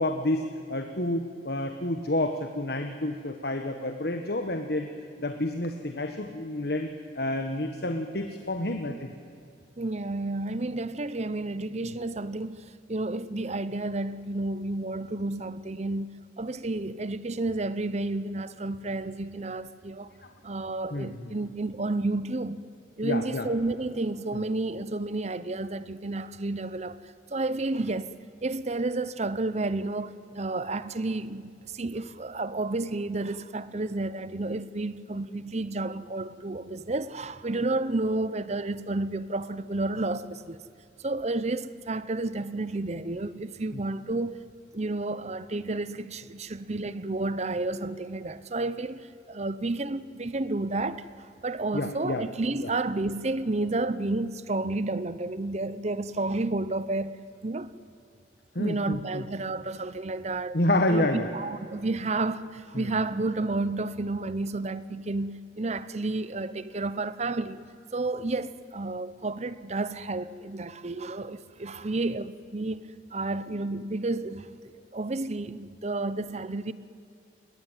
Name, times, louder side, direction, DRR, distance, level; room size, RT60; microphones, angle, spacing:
voice 1, 0.0-4.9 5.2-6.9 7.1-9.1 11.8-11.9 20.2-20.3 20.9-21.3 23.0-23.5 24.3-24.4 43.7-43.8 51.7-52.2 52.6-52.7 58.5-59.2 60.5-61.3 62.7-63.0, left 1 dB, 60° left, 1.4 m, -29 dB
voice 2, 9.8-20.2 20.4-22.6 23.0-28.1 28.4-40.6 41.0-44.4 44.7-57.1 57.4-57.7 58.6-60.6 60.9-67.6 67.9-76.7, right 2 dB, 40° right, 0.8 m, -31 dB
29.0 x 22.0 x 9.2 m
head